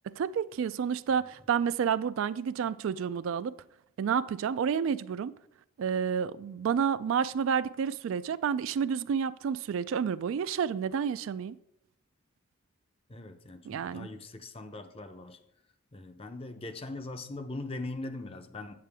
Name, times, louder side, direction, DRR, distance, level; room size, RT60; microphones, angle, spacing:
voice 1, 0.1-3.5 4.0-5.3 5.8-11.6 13.6-14.1, right 7 dB, 65° right, 0.3 m, -30 dB
voice 2, 13.1-15.4 15.9-18.8, left 2 dB, 25° left, 0.6 m, -41 dB
8.9 x 7.5 x 3.5 m
head